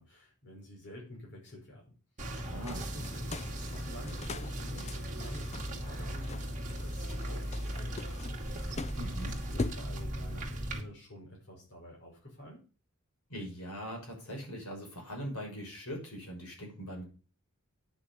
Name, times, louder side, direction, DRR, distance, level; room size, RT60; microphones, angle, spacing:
voice 1, 0.0-1.9 2.5-8.9 9.2-12.6, equal, 55° left, -2 dB, 5.8 m, -50 dB
sound 1, 2.2-10.8, right 1 dB, 35° right, 2.5 m, -38 dB
voice 2, 2.4-2.8 8.9-9.4 13.3-17.0, equal, 75° left, 0 dB, 6.2 m, -41 dB
sound 2, 2.6-9.8, left 3 dB, 30° left, 0.7 m, -43 dB
9.7 x 6.6 x 8.3 m, 0.35 s
head